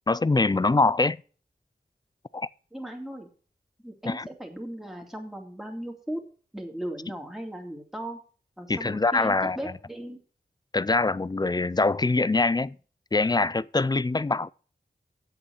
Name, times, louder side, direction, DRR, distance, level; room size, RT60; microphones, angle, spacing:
voice 1, 0.1-1.2 2.3-2.5 4.1-4.3 8.7-9.6 10.7-12.8 13.1-14.5, left 3 dB, 25° left, 0.4 m, -24 dB
voice 2, 2.7-3.3 3.8-6.2 6.5-8.2 8.6-10.2, right 1 dB, ahead, 2.5 m, -37 dB
8.0 x 7.0 x 7.0 m
wide cardioid pair, 60°, 18 cm